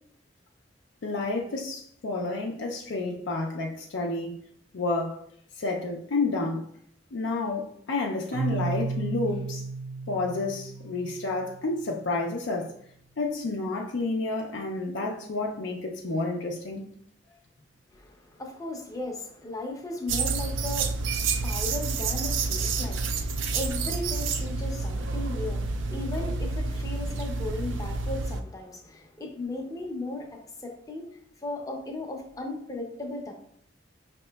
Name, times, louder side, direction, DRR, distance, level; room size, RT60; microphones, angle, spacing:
voice 1, 1.0-4.4 4.7-5.2 5.6-6.6 7.1-9.6 10.1-12.7 13.2-16.9, left 3 dB, 80° left, 0.5 m, -30 dB
Keyboard (musical), 8.3-12.0, right 4 dB, 50° right, 0.8 m, -34 dB
voice 2, 17.9-31.1 31.4-33.3, left 2 dB, 20° left, 0.6 m, -36 dB
sound 1, 20.1-28.4, right 4 dB, 85° right, 0.3 m, -29 dB
5.2 x 2.8 x 2.2 m
head